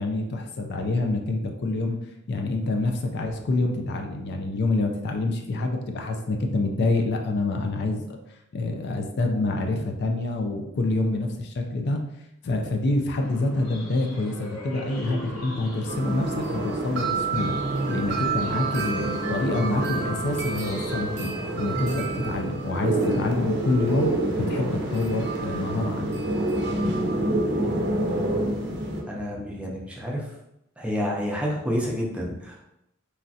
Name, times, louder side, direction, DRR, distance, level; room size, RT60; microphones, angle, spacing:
voice 1, 0.0-2.0 2.3-8.2 8.5-12.0 12.4-17.6 17.9-24.1 24.5-26.1, left 2 dB, 55° left, 3 dB, 0.4 m, -27 dB
sound 1, 13.2-21.8, equal, 80° left, 0.8 m, -39 dB
sound 2, 15.9-29.0, right 2 dB, 55° right, 0.5 m, -27 dB
voice 2, 29.1-30.3 30.8-32.6, equal, 5° right, -3 dB, 0.5 m, -29 dB
3.1 x 2.4 x 2.6 m, 0.83 s
head